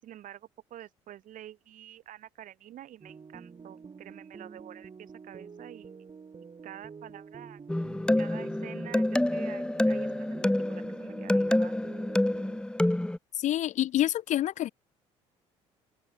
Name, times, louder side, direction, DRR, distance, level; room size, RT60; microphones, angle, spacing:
voice 1, 0.0-5.9 6.6-7.6 8.2-11.8, right 12 dB, 55° right, 7.7 m, -48 dB
sound 1, 3.0-12.6, right 5 dB, 30° right, 3.8 m, -48 dB
sound 2, 7.7-13.2, left 1 dB, 5° left, 1.0 m, -27 dB
voice 2, 13.4-14.7, left 13 dB, 50° left, 0.6 m, -27 dB
open air
hypercardioid pair, 60°, 16 cm